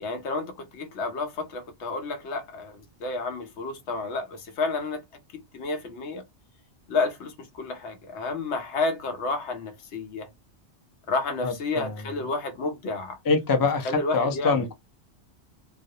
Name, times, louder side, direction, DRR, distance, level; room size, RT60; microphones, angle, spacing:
voice 1, 0.0-5.0 5.3-6.2 6.9-10.3 11.1-13.2 13.8-14.6, left 3 dB, 75° left, 0.9 m, -31 dB
voice 2, 11.4-12.0 13.2-14.8, left 4 dB, 35° left, 0.3 m, -25 dB
2.3 x 2.0 x 2.6 m
omnidirectional pair, 1.2 m